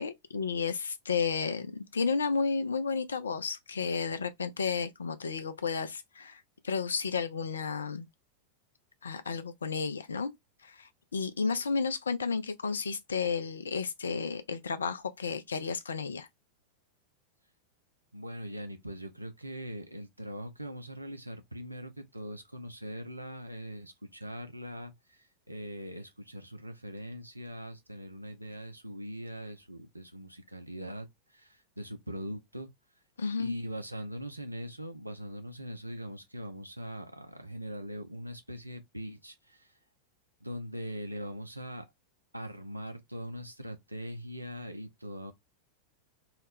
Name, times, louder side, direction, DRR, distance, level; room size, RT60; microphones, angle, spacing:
voice 1, 0.0-8.1 9.0-10.3 10.6-16.3 33.2-33.5, left 5 dB, 70° left, 0.4 m, -32 dB
voice 2, 18.1-32.7 33.4-39.7 40.4-41.9 42.3-45.3, equal, 85° right, 0.5 m, -41 dB
2.3 x 2.1 x 3.2 m
figure-of-eight pair, 90°, 0 cm